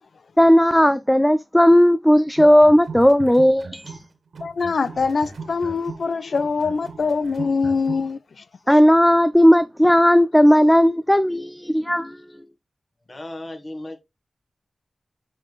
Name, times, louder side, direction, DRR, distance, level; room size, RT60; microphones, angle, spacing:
voice 1, 0.4-4.0 8.7-12.2, equal, 5° left, 0.4 m, -15 dB
sound 1, 2.3-4.1 4.3-8.1, right 4 dB, 85° right, 1.9 m, -37 dB
voice 2, 4.4-8.2, left 4 dB, 70° left, 0.4 m, -23 dB
voice 3, 13.1-14.0, left 1 dB, 40° left, 1.8 m, -35 dB
7.5 x 5.4 x 2.3 m
wide cardioid pair, 75°, 0 cm